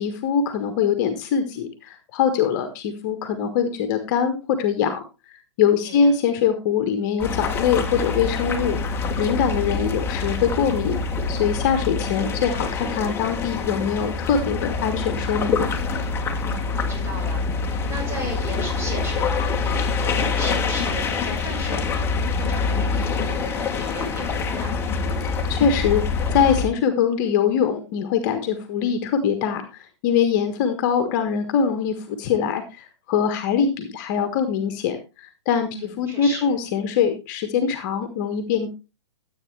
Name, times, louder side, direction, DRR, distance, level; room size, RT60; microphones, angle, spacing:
voice 1, 0.0-11.0 11.3-15.7 25.5-38.7, left 7 dB, 40° left, 8 dB, 1.6 m, -23 dB
sound 1, 7.2-26.7, left 4 dB, 15° left, 1.7 m, -25 dB
voice 2, 16.5-25.0 35.7-36.5, right 1 dB, 15° right, 0 dB, 5.8 m, -36 dB
13.5 x 8.5 x 3.4 m, 0.29 s
figure-of-eight pair, 120°, 15 cm